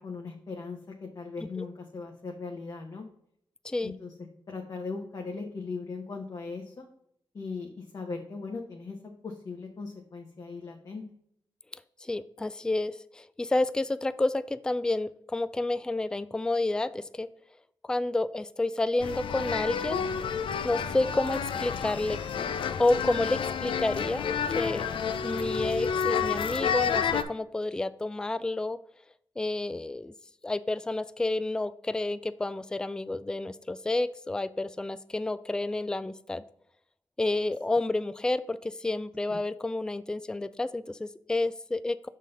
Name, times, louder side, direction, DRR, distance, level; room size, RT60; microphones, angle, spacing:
voice 1, 0.0-3.1 3.8-4.1 4.5-6.9 7.3-9.0 9.2-11.0 39.3-39.4, left 4 dB, 45° left, 1 dB, 1.0 m, -38 dB
voice 2, 12.0-17.3 17.8-20.0 20.6-22.2 22.8-24.9 25.2-28.8 29.4-30.1 30.4-36.4 37.2-42.1, left 2 dB, 10° left, 14 dB, 0.3 m, -30 dB
sound 1, 19.0-27.2, left 7 dB, 80° left, 0.5 m, -30 dB
6.4 x 3.9 x 5.3 m, 0.71 s
wide cardioid pair, 100°, 9 cm